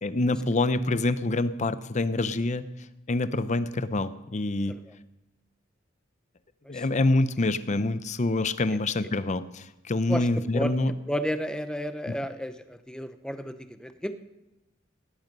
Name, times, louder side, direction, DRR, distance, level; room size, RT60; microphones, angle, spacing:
voice 1, 0.0-2.6 3.1-4.7 6.7-10.9 12.1-12.2, left 2 dB, 40° left, 14 dB, 0.6 m, -26 dB
voice 2, 11.1-14.1, equal, 5° left, 10 dB, 0.7 m, -32 dB
17.5 x 10.5 x 5.4 m, 0.97 s
head